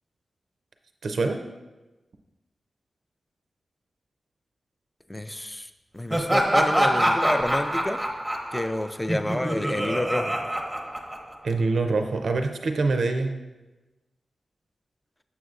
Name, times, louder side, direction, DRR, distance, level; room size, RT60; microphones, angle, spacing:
voice 1, 1.0-1.4 11.4-13.3, right 3 dB, 70° right, 6 dB, 0.4 m, -25 dB
voice 2, 5.1-8.0 8.5-10.4, left 1 dB, 10° left, 10 dB, 0.3 m, -28 dB
Laughter, 6.1-11.5, equal, 5° right, 0.7 m, -25 dB
6.9 x 6.3 x 2.4 m, 1.1 s
wide cardioid pair, 95°, 0 cm